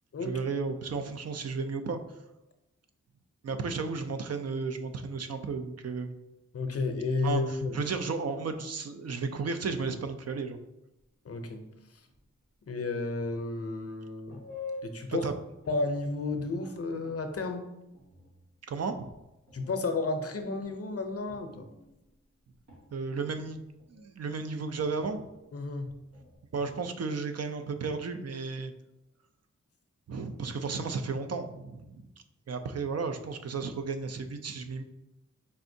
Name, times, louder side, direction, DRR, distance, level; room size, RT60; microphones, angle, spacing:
voice 1, 0.2-2.0 3.4-6.1 7.2-10.6 15.1-15.3 18.7-19.1 22.9-23.6 23.9-25.3 26.5-28.7 30.1-32.1 32.5-34.8, right 4 dB, 55° right, 8 dB, 0.5 m, -33 dB
voice 2, 6.5-7.7 11.2-11.7 12.7-14.4 14.8-15.3 15.7-17.6 19.5-21.7 25.5-25.9, left 3 dB, 50° left, 6 dB, 0.6 m, -32 dB
sound 1, 11.0-11.1 11.4-11.6 11.9-12.7 13.2-13.8 14.2-15.2 15.6-16.1 16.4-19.2 19.5-26.4, left 3 dB, 90° right, 1.4 m, -49 dB
4.3 x 3.5 x 2.7 m, 0.94 s
cardioid pair, 45°, 30 cm